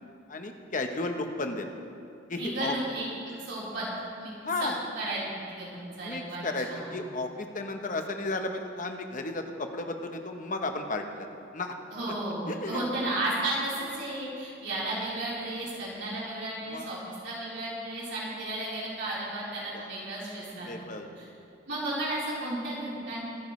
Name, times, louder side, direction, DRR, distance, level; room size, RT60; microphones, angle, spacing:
voice 1, 0.3-1.8 2.3-2.7 4.4-4.8 6.0-11.8 12.5-12.9 16.7-16.9 19.7-19.9 20.6-21.1, left 2 dB, 40° left, 5 dB, 1.0 m, -34 dB
voice 2, 2.4-3.0 3.4-3.9 4.2-4.3 4.6-4.7 5.0-6.4 6.7-6.9 11.9-17.0 17.2-20.9 21.2-21.3 21.7-23.2, right 1 dB, 60° right, -8 dB, 4.1 m, -33 dB
25.0 x 10.5 x 3.2 m, 2.5 s
head